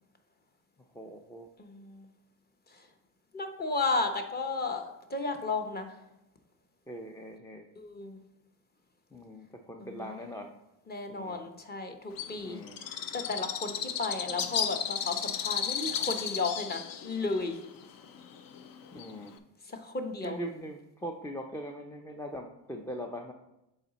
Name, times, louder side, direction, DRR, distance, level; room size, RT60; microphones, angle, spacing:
voice 1, 0.9-1.5 6.9-7.7 9.1-10.5 11.1-11.4 12.4-12.8 18.9-19.3 20.2-23.3, equal, 10° left, 3 dB, 0.5 m, -41 dB
voice 2, 1.6-2.1 2.7-2.9 3.3-6.0 7.8-8.2 9.8-10.0 10.9-17.6 19.6-20.4, left 3 dB, 25° left, 5 dB, 0.9 m, -34 dB
Bird, 12.2-19.4, left 8 dB, 55° left, 0.7 m, -35 dB
7.2 x 4.0 x 4.1 m, 0.88 s
supercardioid pair, 95°, 40 cm